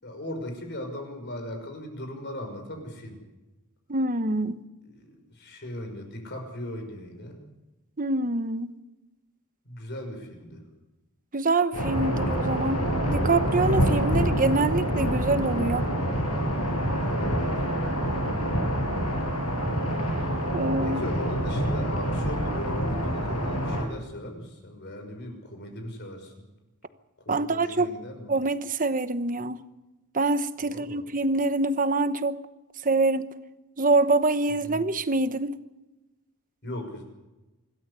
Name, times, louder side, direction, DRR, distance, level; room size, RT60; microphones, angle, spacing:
voice 1, 0.0-3.2 4.8-7.4 9.6-10.6 16.9-17.5 20.8-26.4 27.3-28.3 30.6-31.0 34.5-34.8 36.6-37.0, left 1 dB, 50° left, 4 dB, 5.9 m, -38 dB
voice 2, 3.9-4.6 8.0-8.7 11.3-12.8 13.1-15.9 18.6-18.7 20.5-21.0 27.3-27.9 28.3-29.6 30.1-32.4 32.8-33.3 33.8-35.6, right 3 dB, 40° right, 12 dB, 1.1 m, -25 dB
sound 1, 11.7-23.8, equal, 85° left, 6.4 m, -26 dB
25.5 x 13.5 x 8.4 m, 1.0 s
head